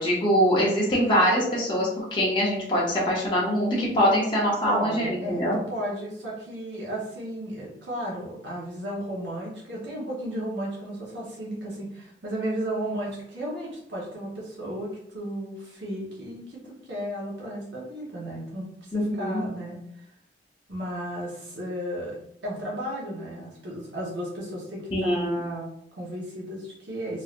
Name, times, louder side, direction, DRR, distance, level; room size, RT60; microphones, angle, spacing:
voice 1, 0.0-5.6 18.9-19.4 24.9-25.4, equal, 25° left, -6 dB, 0.7 m, -23 dB
voice 2, 4.6-20.1 20.7-22.2 22.4-27.2, right 1 dB, 80° right, -4 dB, 0.9 m, -34 dB
3.1 x 2.7 x 2.4 m, 0.71 s
head